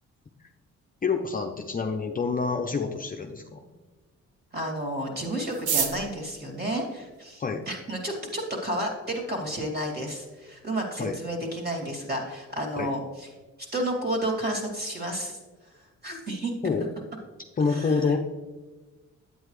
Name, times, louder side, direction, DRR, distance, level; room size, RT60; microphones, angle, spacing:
voice 1, 1.0-3.6 7.4-7.6 11.0-11.2 12.8-12.9 16.6-16.9 17.6-18.2, left 4 dB, 30° left, 3 dB, 0.7 m, -27 dB
voice 2, 4.5-13.3 13.6-15.4 15.7-16.5 17.7-18.1, right 1 dB, 30° right, 1 dB, 2.5 m, -31 dB
sound 1, 5.5-7.7 8.5-8.6 8.9-9.0 9.2-9.7 10.0-10.1 10.3-10.7 11.1-11.2 11.6-11.9, right 6 dB, 80° right, 1.0 m, -31 dB
8.9 x 8.4 x 3.2 m, 1.2 s
cardioid pair, 90°, 30 cm